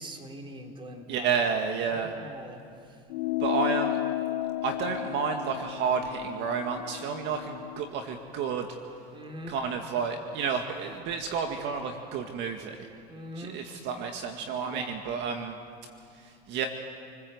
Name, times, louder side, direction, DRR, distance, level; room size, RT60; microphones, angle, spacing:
voice 1, 0.0-1.3 1.9-3.0 9.1-9.6 13.1-13.6 14.6-14.9, right 1 dB, 25° right, 3 dB, 3.6 m, -42 dB
voice 2, 1.1-2.1 3.4-4.0 4.6-8.7 9.5-12.9 13.4-15.6 16.1-16.7, right 6 dB, 55° right, 4 dB, 2.0 m, -31 dB
sound 1, 3.1-7.9, left 15 dB, 85° left, 1.0 m, -33 dB
29.0 x 20.5 x 8.0 m, 2.5 s
supercardioid pair, 110°, 21 cm